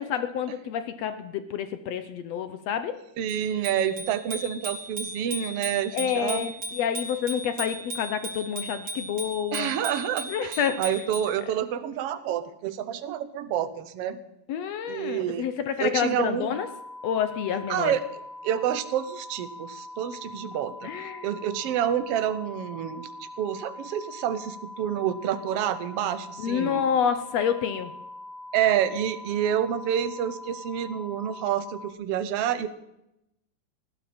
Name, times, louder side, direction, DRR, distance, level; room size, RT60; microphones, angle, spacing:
voice 1, 0.0-3.0 5.9-9.7 10.3-10.9 14.5-16.7 17.0-18.0 20.8-21.3 26.4-27.9, left 8 dB, 70° left, 10 dB, 1.6 m, -28 dB
voice 2, 3.2-6.5 9.5-14.2 14.9-15.5 15.8-16.6 17.7-18.0 18.4-26.9 28.5-32.7, right 10 dB, 65° right, 12 dB, 1.6 m, -28 dB
Bicycle bell, 3.3-11.4, right 1 dB, 30° right, 3.7 m, -37 dB
sound 1, 16.5-31.9, left 2 dB, 10° right, 1.1 m, -42 dB
19.5 x 16.5 x 4.4 m, 0.86 s
omnidirectional pair, 3.7 m